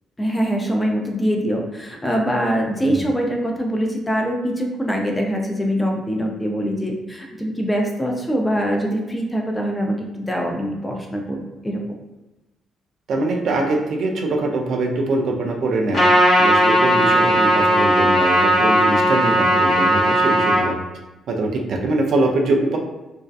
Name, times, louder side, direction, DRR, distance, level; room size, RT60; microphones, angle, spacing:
voice 1, 0.2-11.8, equal, 15° left, 1 dB, 0.5 m, -23 dB
voice 2, 13.1-16.0 16.4-20.8 21.3-22.8, right 2 dB, 65° right, 2 dB, 0.4 m, -22 dB
Trumpet, 15.9-20.6, equal, 50° left, 1.1 m, -16 dB
2.6 x 2.2 x 2.3 m, 1.1 s
cardioid pair, 90°, 0 cm